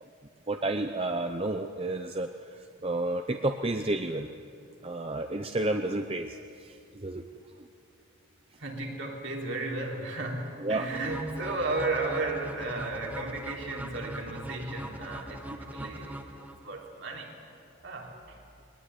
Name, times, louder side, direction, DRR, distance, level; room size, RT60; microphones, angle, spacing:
voice 1, 0.5-4.3 4.8-7.2 10.6-10.9, right 2 dB, 25° right, 6 dB, 0.7 m, -31 dB
voice 2, 8.6-17.3 17.8-18.4, right 2 dB, 60° right, 0 dB, 3.3 m, -34 dB
sound 1, 10.9-16.9, right 1 dB, 10° right, 1.1 m, -41 dB
21.5 x 19.0 x 9.7 m, 2.5 s
head